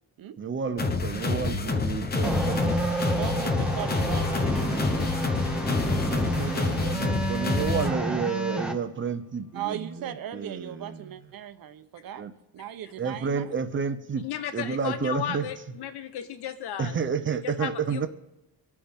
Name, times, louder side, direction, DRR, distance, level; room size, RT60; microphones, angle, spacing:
voice 1, 0.4-2.8 5.9-11.1 12.2-12.3 13.0-14.2 14.5-15.5 16.8-18.1, right 6 dB, 30° right, 10 dB, 0.7 m, -31 dB
sound 1, 0.8-7.9, left 3 dB, 25° left, 0.8 m, -28 dB
sound 2, 2.2-8.7, right 1 dB, ahead, 0.9 m, -30 dB
voice 2, 3.2-5.4 9.5-12.3 12.5-13.4, right 10 dB, 55° right, 9 dB, 0.9 m, -38 dB
sound 3, 3.3-9.6, left 3 dB, 45° left, 1.2 m, -40 dB
voice 3, 14.2-17.0 17.4-18.1, left 10 dB, 70° left, 10 dB, 1.1 m, -34 dB
25.5 x 8.9 x 3.6 m, 0.94 s
cardioid pair, 170°, 41 cm